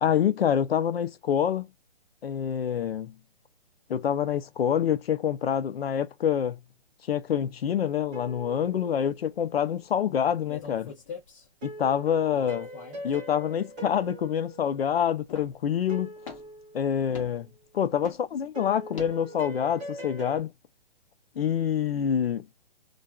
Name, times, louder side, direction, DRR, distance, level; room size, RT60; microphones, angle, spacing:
voice 1, 0.0-1.7 2.2-3.1 3.9-6.6 7.1-10.9 11.6-12.7 13.0-16.1 16.7-17.5 17.7-20.5 21.4-22.5, left 9 dB, 75° left, 0.7 m, -26 dB
sound 1, 8.1-9.6 11.6-15.3 15.9-17.4 18.5-20.4, right 2 dB, 10° right, 0.5 m, -42 dB
sound 2, 10.5-11.5 12.3-13.1 15.3-15.6 16.2-16.6 17.1-17.4 18.0-18.3 18.9-19.2, left 6 dB, 30° left, 1.0 m, -42 dB
2.5 x 2.4 x 2.3 m
hypercardioid pair, 165°, 30 cm